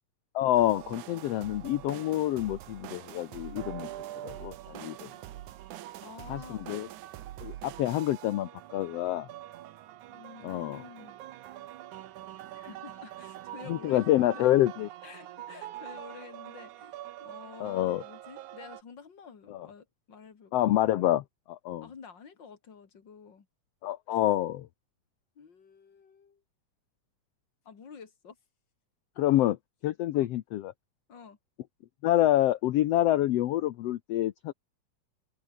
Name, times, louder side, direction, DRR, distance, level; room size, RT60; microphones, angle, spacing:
voice 1, 0.3-3.9 4.2-5.1 6.3-6.9 7.4-9.3 10.4-10.8 13.7-14.9 17.6-18.0 19.5-19.7 20.5-21.9 23.8-24.7 29.2-29.6 29.8-30.7 32.0-34.5, left 14 dB, 70° left, 1.6 m, -27 dB
sound 1, 0.5-18.8, right 13 dB, 75° right, 2.5 m, -44 dB
voice 2, 6.0-6.8 10.1-11.2 12.5-14.5 15.0-20.7 21.8-23.5 24.1-24.2 25.4-26.4 27.6-28.4 30.1-30.3 31.1-31.4, left 6 dB, 35° left, 2.8 m, -49 dB
omnidirectional pair, 3.6 m